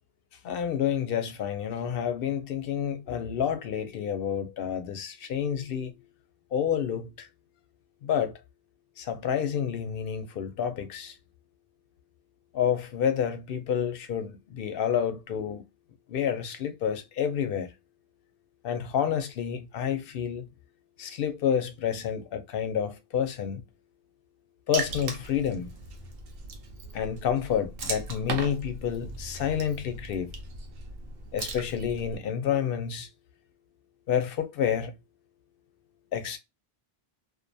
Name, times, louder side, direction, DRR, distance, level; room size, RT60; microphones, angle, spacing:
voice 1, 0.4-5.9 6.5-7.3 8.0-8.3 9.0-11.2 12.5-15.6 16.1-17.7 18.6-20.5 21.0-23.6 24.7-25.7 26.9-30.3 31.3-33.1 34.1-34.9 36.1-36.4, left 8 dB, 65° left, 0.7 m, -29 dB
Water / Splash splatter, 24.7-32.2, right 4 dB, 70° right, 0.8 m, -38 dB
2.5 x 2.2 x 2.5 m
omnidirectional pair, 1.0 m